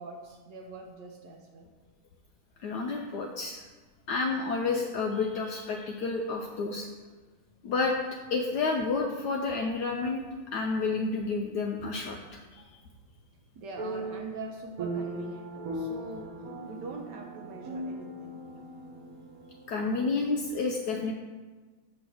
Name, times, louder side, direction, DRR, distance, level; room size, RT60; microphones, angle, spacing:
voice 1, 0.0-1.7 12.6-12.7 13.5-18.4, right 3 dB, 70° right, 2 dB, 1.1 m, -43 dB
voice 2, 2.6-3.6 4.1-6.9 7.6-12.6 19.7-21.1, left 4 dB, 75° left, 1 dB, 0.9 m, -30 dB
sound 1, 11.8-12.2 13.8-20.5, right 1 dB, 50° right, 1.3 m, -39 dB
7.7 x 3.2 x 6.1 m, 1.3 s
omnidirectional pair, 2.3 m